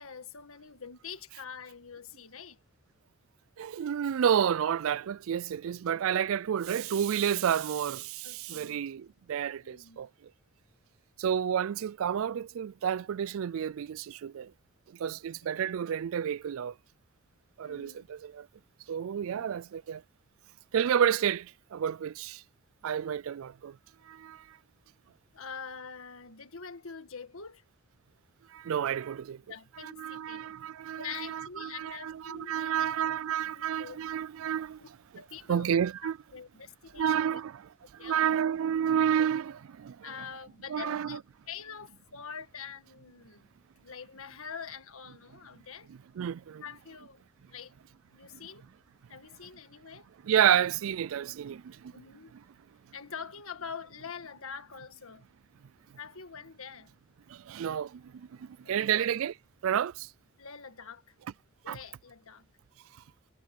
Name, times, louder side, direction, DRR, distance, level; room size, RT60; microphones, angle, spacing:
voice 1, 0.0-2.6 8.2-8.8 9.6-10.1 15.0-15.2 15.6-15.7 17.6-18.1 19.3-19.6 25.3-27.6 29.5-30.5 31.0-33.1 33.5-34.0 34.8-34.9 35.1-37.4 38.0-38.3 39.2-39.3 40.0-43.5 43.8-45.9 46.6-47.2 47.5-47.7 48.1-48.6 49.1-50.1 51.9-52.3 52.9-55.3 56.0-56.9 58.6-59.1 60.4-61.1 61.6-62.5, left 6 dB, 75° left, 1.6 m, -45 dB
voice 2, 3.6-10.1 11.2-14.5 15.0-16.7 17.6-18.5 18.9-20.0 20.7-22.4 22.8-23.8 24.1-24.6 28.5-29.4 29.8-34.8 35.5-36.2 37.0-37.5 37.9-40.0 40.7-41.2 45.9-46.6 50.2-51.9 57.3-59.3 59.6-60.1 61.7-61.8, right 9 dB, 70° right, 0.3 m, -30 dB
head